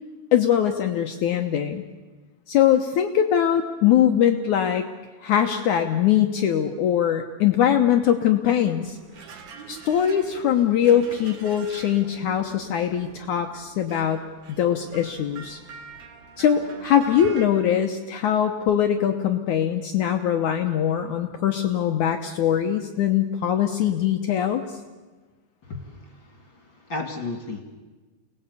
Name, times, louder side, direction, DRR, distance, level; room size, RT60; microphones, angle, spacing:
voice 1, 0.3-1.8 2.5-4.9 5.2-9.0 9.7-14.2 14.5-15.6 16.4-24.6, left 9 dB, 80° left, 5 dB, 1.7 m, -22 dB
sound 1, 8.8-17.5, right 5 dB, 60° right, 4.2 m, -44 dB
voice 2, 25.6-27.6, left 3 dB, 35° left, 4 dB, 2.5 m, -34 dB
29.5 x 19.0 x 8.3 m, 1.3 s
omnidirectional pair, 4.8 m